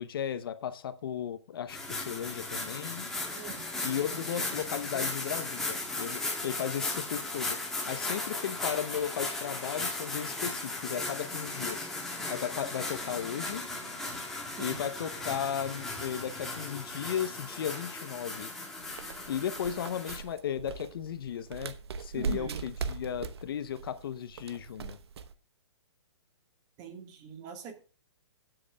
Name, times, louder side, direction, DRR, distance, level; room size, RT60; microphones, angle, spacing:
voice 1, 0.0-3.1 3.8-11.9 12.3-13.6 14.6-18.5 19.3-25.0, left 9 dB, 50° left, 0.8 m, -35 dB
sound 1, 1.7-20.2, left 2 dB, ahead, 2.0 m, -36 dB
voice 2, 3.3-3.6 14.6-14.8 22.1-22.6 26.8-27.7, right 7 dB, 25° right, 1.6 m, -42 dB
sound 2, 18.8-25.3, right 5 dB, 60° right, 0.9 m, -40 dB
21.5 x 7.8 x 2.3 m
hypercardioid pair, 155°, 15 cm